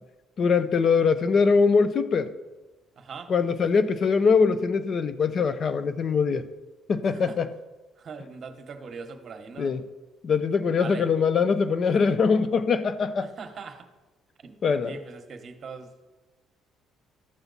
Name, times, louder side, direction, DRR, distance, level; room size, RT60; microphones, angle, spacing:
voice 1, 0.4-2.3 3.3-6.4 6.9-7.5 9.6-9.9 10.2-13.3 14.6-15.0, left 5 dB, 45° left, 0.6 m, -22 dB
voice 2, 3.0-3.3 7.3-7.4 8.0-9.7 10.8-11.0 13.2-13.9 14.4-16.0, right 5 dB, 45° right, 1.1 m, -41 dB
13.5 x 5.8 x 4.1 m
cardioid pair, 100°, 0 cm